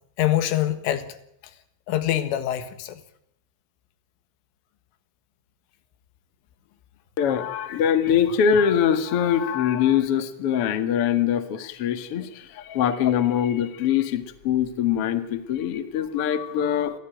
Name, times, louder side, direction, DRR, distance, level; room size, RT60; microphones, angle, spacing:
voice 1, 0.2-1.1 1.9-3.0 13.1-13.2, left 12 dB, 85° left, 10 dB, 4.1 m, -25 dB
voice 2, 7.2-17.0, left 8 dB, 65° left, 9 dB, 1.4 m, -23 dB
26.5 x 16.5 x 9.1 m, 0.76 s
omnidirectional pair, 5.6 m